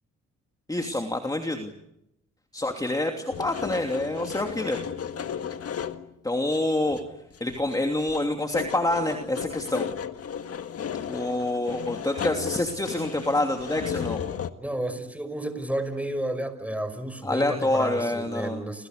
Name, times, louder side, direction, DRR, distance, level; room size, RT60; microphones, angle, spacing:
voice 1, 0.7-1.7 2.5-4.8 6.2-7.0 7.4-9.9 11.1-14.2 17.2-18.6, left 1 dB, 10° left, 4 dB, 2.9 m, -27 dB
sound 1, 3.3-6.1 6.5-6.6 6.9-7.7 8.0-14.5, left 8 dB, 50° left, 1.7 m, -34 dB
voice 2, 14.6-18.9, right 1 dB, 5° right, 10 dB, 5.7 m, -32 dB
29.5 x 28.0 x 6.7 m, 0.83 s
cardioid pair, 90°, 30 cm